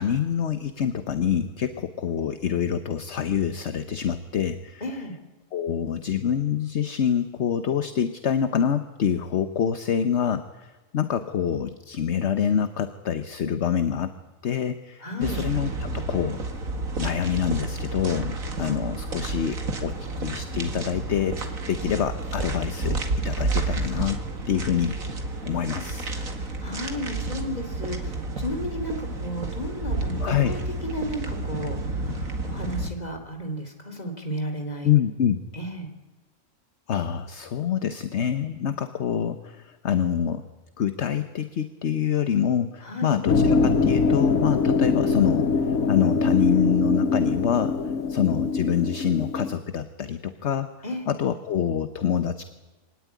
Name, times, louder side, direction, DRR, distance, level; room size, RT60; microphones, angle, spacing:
voice 1, 0.0-4.8 5.5-14.1 14.4-15.7 15.9-16.4 17.0-21.4 21.7-23.0 23.2-24.2 24.5-25.0 25.5-26.1 30.2-30.6 34.8-35.4 36.9-40.4 40.8-45.5 45.9-47.8 48.1-50.7 51.1-52.4, left 8 dB, 55° left, 10 dB, 1.2 m, -26 dB
voice 2, 4.8-5.1 15.0-15.4 26.2-34.9 35.5-35.9 42.8-43.2 50.8-51.1, equal, 30° left, 5 dB, 3.2 m, -33 dB
sound 1, 15.2-32.9, right 2 dB, 80° right, 2.5 m, -30 dB
sound 2, 43.3-49.5, left 4 dB, 90° left, 1.7 m, -23 dB
24.0 x 18.5 x 9.5 m, 1.2 s
omnidirectional pair, 1.4 m